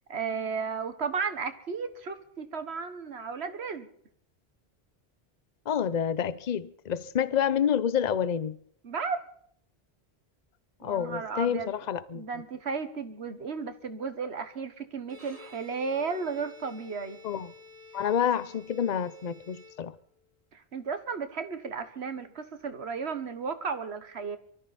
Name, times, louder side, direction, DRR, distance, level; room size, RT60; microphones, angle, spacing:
voice 1, 0.1-3.9 8.8-9.3 10.8-11.8 12.1-17.2 20.5-24.4, right 5 dB, 85° right, 1.6 m, -34 dB
voice 2, 5.7-8.6 10.8-12.4 17.2-17.5 17.9-19.9, left 8 dB, 45° left, 0.8 m, -28 dB
Bowed string instrument, 15.0-20.3, left 3 dB, 35° right, 2.0 m, -52 dB
24.0 x 14.0 x 4.2 m
omnidirectional pair, 1.1 m